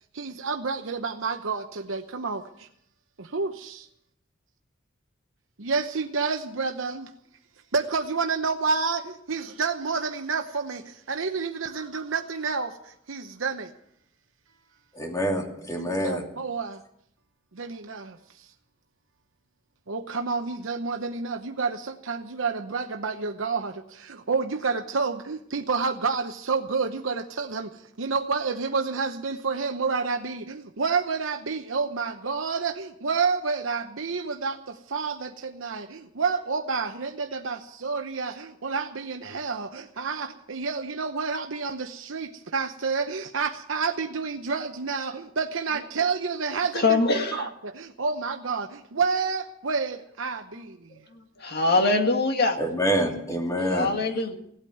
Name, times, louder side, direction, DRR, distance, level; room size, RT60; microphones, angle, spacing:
voice 1, 0.1-2.7 3.2-3.9 5.6-7.1 7.7-13.7 15.8-16.8 17.5-18.5 19.9-51.0, right 4 dB, 75° right, 5 dB, 0.9 m, -29 dB
voice 2, 14.9-16.2 52.6-53.9, equal, 15° left, 1 dB, 2.8 m, -26 dB
voice 3, 46.7-47.4 51.4-52.6 53.7-54.3, left 3 dB, 55° left, 4 dB, 2.0 m, -23 dB
17.0 x 8.8 x 9.3 m, 0.73 s
head